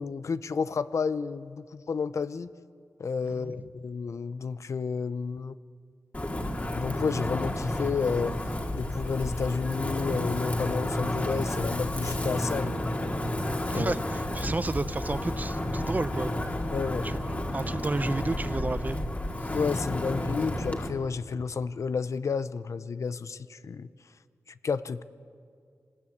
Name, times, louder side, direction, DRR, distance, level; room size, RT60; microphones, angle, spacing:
voice 1, 0.0-2.5 3.0-5.5 6.8-8.3 8.7-13.2 13.7-13.9 16.7-17.1 19.5-23.9 24.6-25.0, left 5 dB, 70° left, 14 dB, 0.6 m, -31 dB
voice 2, 3.2-3.7 13.7-16.3 17.0-17.2 17.5-19.1 19.4-19.5, right 2 dB, 30° right, 13 dB, 0.8 m, -31 dB
Wind, 6.1-20.9, left 1 dB, 30° left, 2.3 m, -31 dB
24.5 x 19.5 x 8.6 m, 2.2 s
wide cardioid pair, 85°, 5 cm